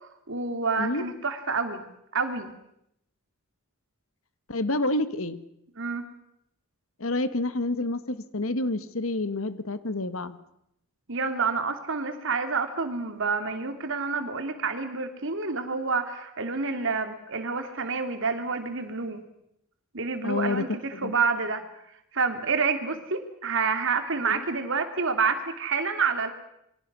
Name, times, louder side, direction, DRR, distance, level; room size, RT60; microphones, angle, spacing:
voice 1, 0.0-1.8 2.1-2.5 5.8-6.0 11.1-19.2 19.9-21.6 22.1-26.3, right 4 dB, 60° right, 7 dB, 3.1 m, -28 dB
voice 2, 4.5-5.4 7.0-10.4 20.2-20.6 21.0-21.1 24.3-24.4, left 2 dB, 65° left, 13 dB, 1.7 m, -28 dB
27.5 x 23.5 x 6.3 m, 0.78 s
head